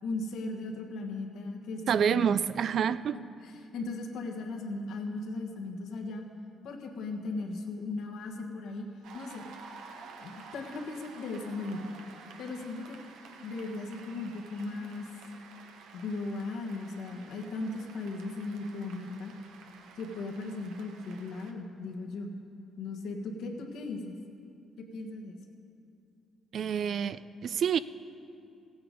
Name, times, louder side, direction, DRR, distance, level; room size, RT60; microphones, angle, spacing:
voice 1, 0.0-2.2 3.4-6.2 6.6-8.9 9.1-9.4 10.2-11.9 12.4-13.0 13.4-15.1 15.9-19.3 19.9-22.3 22.8-24.1 24.8-25.3, left 3 dB, 80° left, 2 dB, 1.4 m, -37 dB
voice 2, 1.9-3.2 26.5-27.8, right 8 dB, 60° right, 15 dB, 0.3 m, -28 dB
Cheering / Applause, 9.0-21.5, right 5 dB, 90° right, 0.9 m, -51 dB
15.5 x 8.8 x 5.3 m, 2.6 s
cardioid pair, 90°, 0 cm